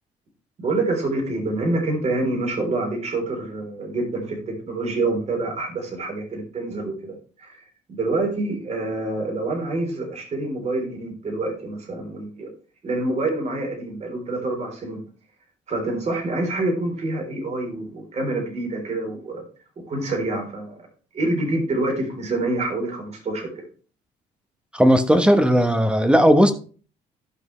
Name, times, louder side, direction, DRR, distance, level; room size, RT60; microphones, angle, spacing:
voice 1, 0.6-7.6 7.9-12.5 12.8-15.0 15.7-19.4 19.9-20.7 21.1-23.6, right 2 dB, 40° right, 3.8 m, -26 dB
voice 2, 24.7-26.5, equal, 5° right, 1.1 m, -16 dB
13.0 x 6.0 x 3.3 m
cardioid pair, 110°, 17 cm